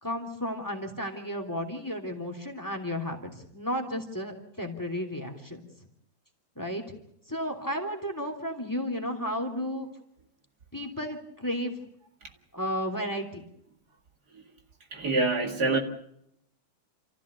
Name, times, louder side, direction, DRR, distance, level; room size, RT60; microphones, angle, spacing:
voice 1, 0.0-5.6 6.6-6.8 7.3-9.9 10.7-11.7 12.5-13.4, equal, 10° left, 2.9 m, -33 dB
voice 2, 14.9-15.8, right 3 dB, 60° right, 2.6 m, -25 dB
28.5 x 15.0 x 8.2 m
omnidirectional pair, 2.0 m